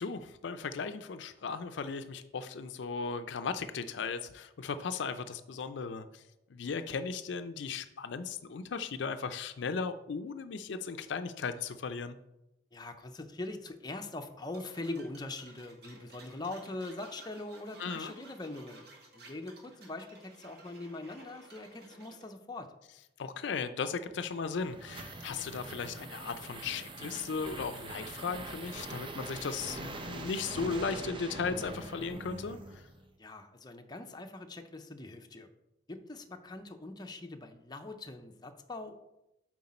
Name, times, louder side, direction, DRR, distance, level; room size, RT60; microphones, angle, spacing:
voice 1, 0.0-6.2 6.5-12.2 17.8-18.1 23.2-32.8, left 5 dB, 70° left, 10 dB, 0.4 m, -36 dB
voice 2, 12.7-18.9 19.1-22.7 33.2-35.5 35.9-38.9, left 2 dB, 25° left, 5 dB, 0.5 m, -42 dB
sound 1, 14.5-22.3, right 2 dB, 60° right, 1.4 m, -54 dB
sound 2, 24.2-33.1, right 2 dB, 25° right, 0.7 m, -43 dB
7.9 x 4.6 x 4.2 m, 0.90 s
head